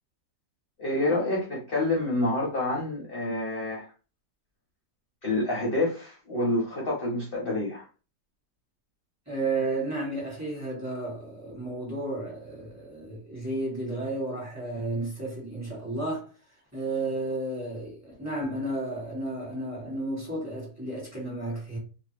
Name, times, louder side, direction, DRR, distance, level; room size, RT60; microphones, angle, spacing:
voice 1, 0.8-3.9 5.2-7.8, left 2 dB, 45° left, 0.8 m, -28 dB
voice 2, 9.3-16.3 16.7-21.8, right 2 dB, 10° right, 1.3 m, -32 dB
2.7 x 2.4 x 3.2 m
omnidirectional pair, 1.8 m